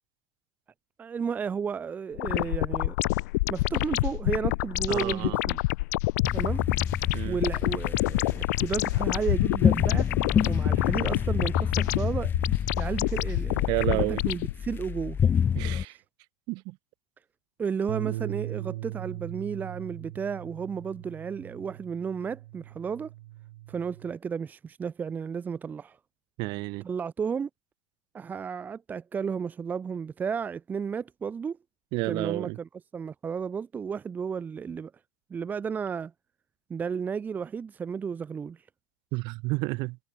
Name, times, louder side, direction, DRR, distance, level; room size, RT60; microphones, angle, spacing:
voice 1, 1.0-3.0 3.5-5.6 6.3-6.6 7.2-10.1 10.4-12.3 12.7-15.2 15.8-16.0 17.6-23.1 23.7-26.0 26.8-27.5 28.1-31.6 32.0-34.9 35.3-36.1 36.7-38.6, right 6 dB, 15° right, 1.4 m, -33 dB
sound 1, 2.2-14.5, left 21 dB, 65° left, 0.6 m, -28 dB
voice 2, 4.9-5.4 7.1-7.4 13.7-14.2 15.6-16.0 16.5-16.8 26.4-26.8 31.9-32.6 39.1-40.0, right 25 dB, 50° right, 2.2 m, -30 dB
sound 2, 6.2-15.8, left 7 dB, 20° left, 1.8 m, -28 dB
Bass guitar, 17.9-24.1, right 17 dB, 75° right, 1.9 m, -39 dB
supercardioid pair, 145°, 10 cm